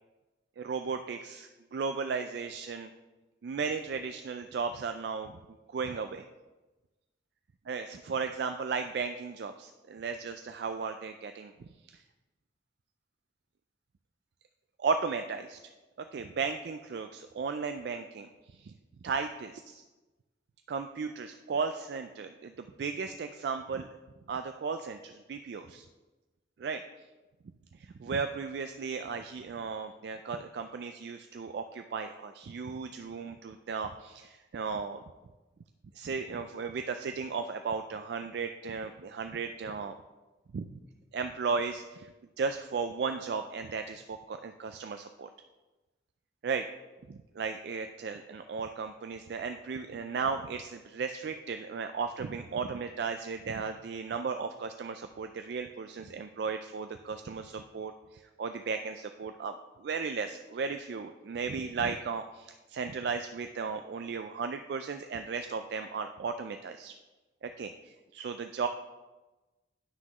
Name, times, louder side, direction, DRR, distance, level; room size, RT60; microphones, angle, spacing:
voice 1, 0.6-2.9 3.4-5.4 5.7-6.3 7.7-12.0 14.8-15.6 16.0-18.7 19.0-19.8 20.7-23.9 24.3-25.9 26.6-26.8 27.7-35.0 35.9-39.9 40.5-40.8 41.1-45.3 46.4-46.7 47.1-66.9 67.4-68.7, right 5 dB, 60° right, 7 dB, 0.3 m, -35 dB
9.6 x 6.0 x 3.0 m, 1.1 s
head